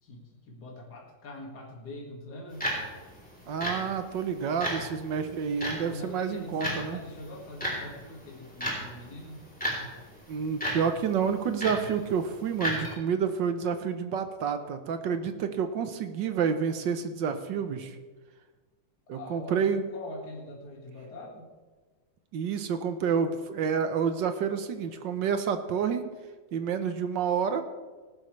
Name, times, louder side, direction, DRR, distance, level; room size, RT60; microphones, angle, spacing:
voice 1, 0.0-2.7 5.9-9.5 19.1-21.5, left 1 dB, 50° left, -2 dB, 2.5 m, -43 dB
sound 1, 2.5-12.9, equal, 5° left, 3.4 m, -36 dB
voice 2, 3.5-7.0 10.3-18.0 19.1-19.9 22.3-26.0 26.5-27.6, right 6 dB, 65° right, 8 dB, 1.4 m, -29 dB
18.5 x 11.5 x 3.2 m, 1.3 s
omnidirectional pair, 2.3 m